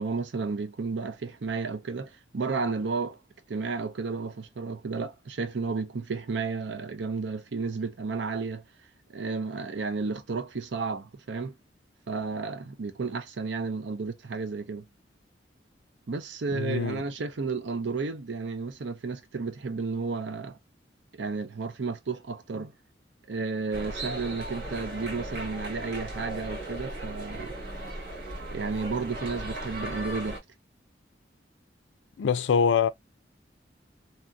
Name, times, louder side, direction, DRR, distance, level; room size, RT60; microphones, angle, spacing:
voice 1, 0.0-3.2 3.5-8.6 9.1-11.5 12.1-14.9 16.1-20.6 21.1-22.7 23.3-27.5 28.5-30.4, right 4 dB, 85° right, 0.6 m, -32 dB
voice 2, 16.5-17.0 32.2-32.9, left 6 dB, 90° left, 0.4 m, -24 dB
sound 1, 23.7-30.4, right 1 dB, 70° right, 1.5 m, -37 dB
2.8 x 2.7 x 2.2 m
head